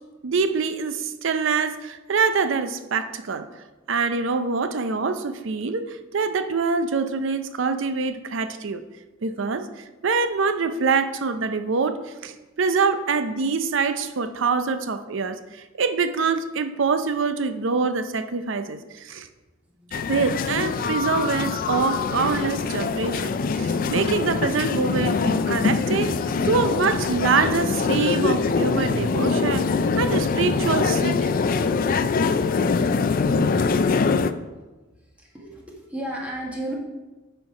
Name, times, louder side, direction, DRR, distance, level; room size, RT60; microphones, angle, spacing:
voice 1, 0.2-3.5 3.9-8.8 9.2-9.7 10.0-19.3 19.9-26.1 26.4-29.7 30.0-31.3, right 5 dB, 65° right, 10 dB, 0.5 m, -25 dB
voice 2, 19.8-20.1 35.2-36.8, right 1 dB, 5° right, -3 dB, 1.5 m, -34 dB
sound 1, 19.9-34.3, left 4 dB, 45° left, 0.4 m, -23 dB
9.4 x 4.5 x 4.7 m, 1.2 s
head